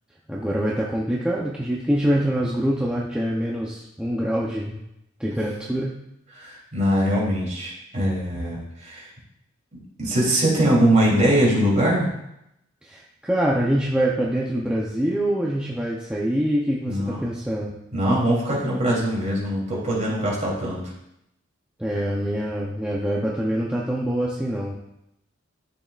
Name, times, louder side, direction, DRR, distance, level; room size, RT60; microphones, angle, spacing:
voice 1, 0.3-4.8 5.2-5.9 12.8-17.7 21.8-24.8, right 1 dB, 5° right, -4 dB, 0.7 m, -25 dB
voice 2, 6.3-9.1 10.0-12.1 16.9-17.2 17.9-20.9, right 1 dB, 35° right, -5 dB, 3.2 m, -22 dB
12.0 x 6.8 x 2.5 m, 0.83 s
head